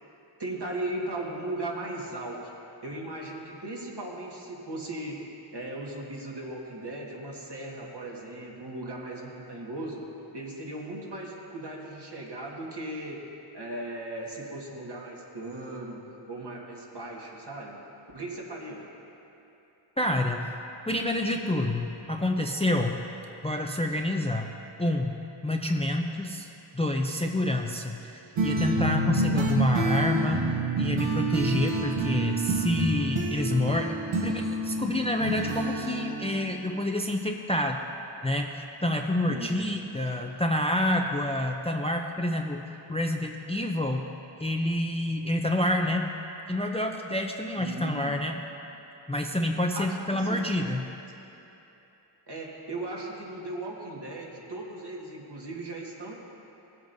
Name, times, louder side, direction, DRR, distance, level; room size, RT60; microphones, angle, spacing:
voice 1, 0.4-2.5 2.8-5.2 5.5-10.0 10.3-13.2 13.5-17.8 18.1-18.9 39.3-39.6 47.5-48.2 49.8-50.5 52.3-56.1, right 2 dB, 55° right, -3 dB, 1.7 m, -37 dB
voice 2, 20.0-20.5 20.9-23.0 23.4-24.5 24.8-26.5 26.7-37.8 38.2-42.6 42.9-44.0 44.4-46.1 46.5-48.4 49.1-50.9, left 1 dB, 15° left, 2 dB, 0.5 m, -28 dB
sound 1, 28.4-36.8, right 2 dB, 80° right, 1.2 m, -28 dB
16.5 x 8.0 x 2.7 m, 2.9 s
cardioid pair, 50°, 49 cm